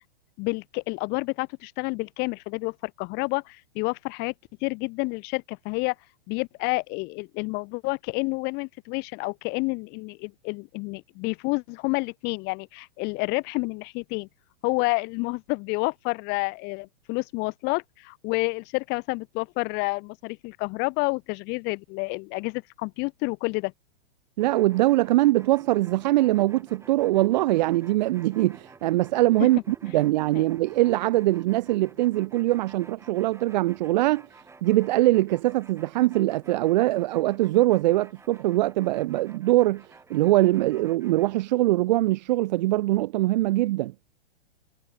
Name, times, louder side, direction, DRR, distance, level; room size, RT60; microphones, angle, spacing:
voice 1, 0.4-4.3 4.6-5.9 6.3-14.3 14.6-23.7 30.3-30.5, left 28 dB, 35° left, 1.4 m, -29 dB
sound 1, 24.4-41.4, right 4 dB, 10° right, 6.3 m, -51 dB
voice 2, 24.4-34.2 34.6-39.8 40.1-43.9, right 17 dB, 50° right, 0.4 m, -22 dB
hypercardioid pair, 130°, 29 cm